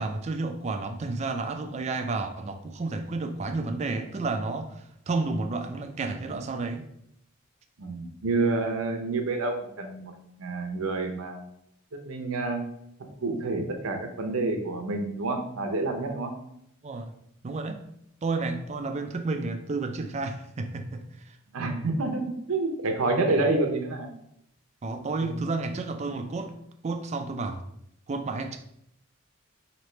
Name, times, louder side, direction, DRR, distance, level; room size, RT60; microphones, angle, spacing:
voice 1, 0.0-6.9 16.8-17.1 17.4-17.8 18.2-21.4 24.8-26.5 26.8-27.6 28.1-28.6, right 3 dB, 30° right, 6 dB, 0.3 m, -31 dB
voice 2, 7.8-10.1 10.4-11.4 12.0-12.6 13.0-16.3 21.5-24.1 25.2-25.3, right 3 dB, 85° right, 4 dB, 0.7 m, -28 dB
3.1 x 2.9 x 4.3 m, 0.74 s
head